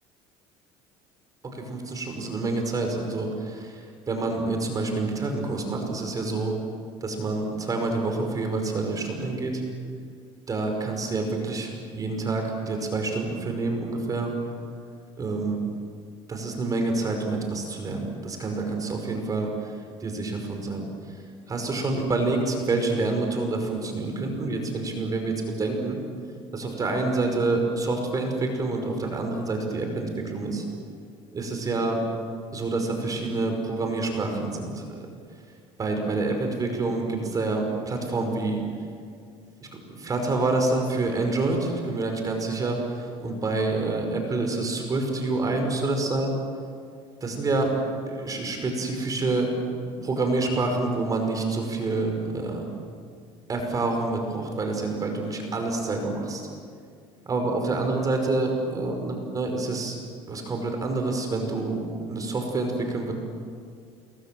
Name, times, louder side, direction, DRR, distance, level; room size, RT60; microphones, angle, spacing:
voice 1, 1.5-6.5 7.0-9.6 10.5-14.3 15.2-15.6 16.3-20.9 21.5-26.0 26.5-30.6 31.3-32.0 32.5-35.1 35.8-38.6 39.6-46.4 47.2-47.7 48.1-49.5 50.0-52.7 53.5-56.5 57.3-60.0 60.3-61.8 62.1-63.1, right 3 dB, 30° right, 3 dB, 5.5 m, -27 dB
29.5 x 22.5 x 7.8 m, 2.2 s
supercardioid pair, 105°, 12 cm